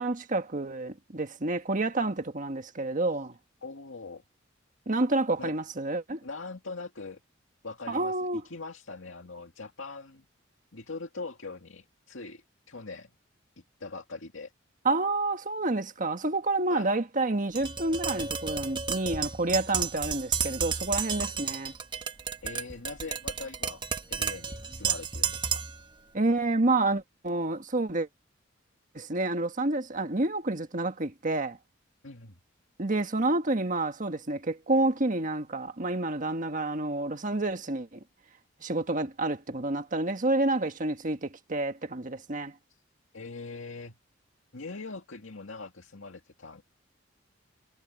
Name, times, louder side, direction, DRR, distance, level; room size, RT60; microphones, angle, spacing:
voice 1, 0.0-3.4 4.9-6.2 7.9-8.4 14.8-21.7 26.1-28.1 28.9-31.6 32.8-38.0 38.6-42.5, right 2 dB, 40° right, 1.5 m, -29 dB
voice 2, 3.6-4.2 5.4-5.5 6.2-7.2 7.6-10.3 10.7-13.1 13.6-14.5 16.7-16.9 22.4-25.7 32.0-32.4 42.7-42.8 43.1-44.0 44.5-46.6, left 3 dB, 85° left, 2.1 m, -42 dB
Tap, 17.6-25.8, right 6 dB, 25° right, 1.2 m, -32 dB
head